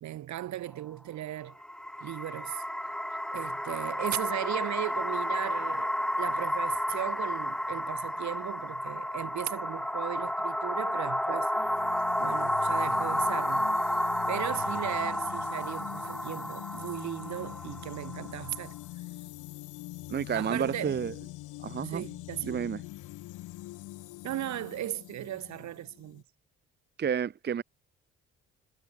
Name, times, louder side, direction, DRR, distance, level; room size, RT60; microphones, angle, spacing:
voice 1, 0.0-1.6 2.0-2.6 3.3-11.5 12.2-13.8 14.3-18.8 20.3-21.3 21.8-22.7 24.2-26.2, right 13 dB, 60° right, 1.2 m, -37 dB
sound 1, 1.5-18.7, equal, ahead, 0.8 m, -31 dB
sound 2, 11.5-26.2, left 17 dB, 70° left, 2.3 m, -44 dB
voice 2, 20.1-21.1 21.6-22.0 22.4-22.8 27.0-27.6, right 8 dB, 30° right, 0.7 m, -31 dB
hypercardioid pair, 45°, 32 cm